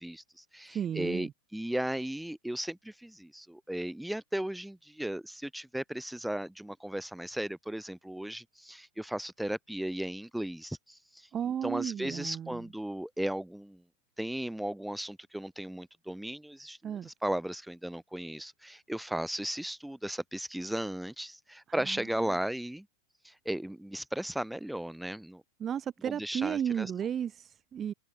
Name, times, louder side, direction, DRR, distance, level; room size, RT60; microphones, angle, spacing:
voice 1, 0.0-11.3 11.6-13.8 14.2-22.9 23.2-25.4 26.0-26.9, right 1 dB, ahead, 6.7 m, -36 dB
voice 2, 0.7-1.3 11.3-12.7 16.8-17.1 21.8-22.0 25.6-27.9, right 9 dB, 25° right, 5.0 m, -34 dB
figure-of-eight pair, 90°, 0 cm